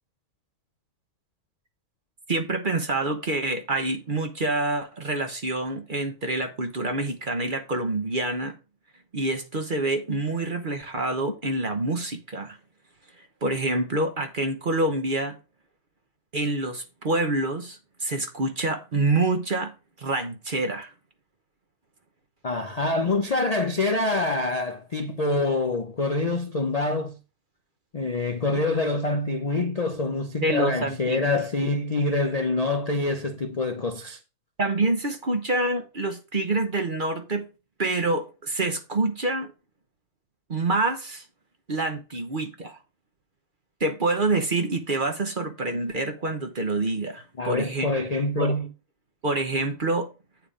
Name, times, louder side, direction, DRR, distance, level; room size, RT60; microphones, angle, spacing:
voice 1, 2.3-8.6 9.1-12.6 13.2-15.4 16.3-19.7 20.0-20.9 30.4-31.4 34.6-37.5 37.8-39.5 40.5-41.2 41.7-42.8 43.8-48.0 48.4-48.6 49.2-50.1, right 2 dB, 40° right, 0.9 m, -27 dB
voice 2, 22.4-27.2 27.9-34.2 47.4-48.7, left 2 dB, 40° left, 0.5 m, -26 dB
8.7 x 4.7 x 4.9 m
omnidirectional pair, 1.6 m